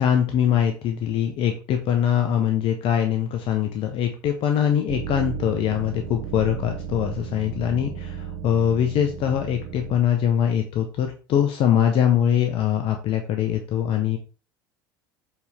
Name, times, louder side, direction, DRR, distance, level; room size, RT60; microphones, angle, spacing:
voice 1, 0.0-14.2, left 9 dB, 50° left, 4 dB, 1.0 m, -22 dB
sound 1, 4.9-10.0, right 8 dB, 60° right, 1.0 m, -35 dB
7.2 x 4.3 x 3.5 m, 0.36 s
hypercardioid pair, 75°, 12 cm